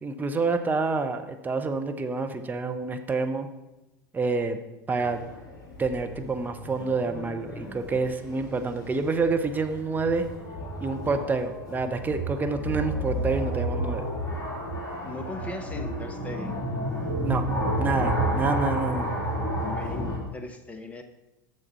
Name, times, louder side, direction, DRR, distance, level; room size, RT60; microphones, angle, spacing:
voice 1, 0.0-3.5 4.1-4.6 4.9-5.2 5.8-10.2 10.8-14.1 17.2-17.4 17.8-19.1, right 4 dB, 15° right, 6 dB, 0.8 m, -28 dB
sound 1, 5.0-20.2, right 1 dB, 30° left, 2.8 m, -31 dB
voice 2, 15.0-16.6 19.6-21.0, left 2 dB, 10° left, 8 dB, 1.0 m, -38 dB
7.3 x 6.5 x 5.5 m, 1.0 s
figure-of-eight pair, 80°, 11 cm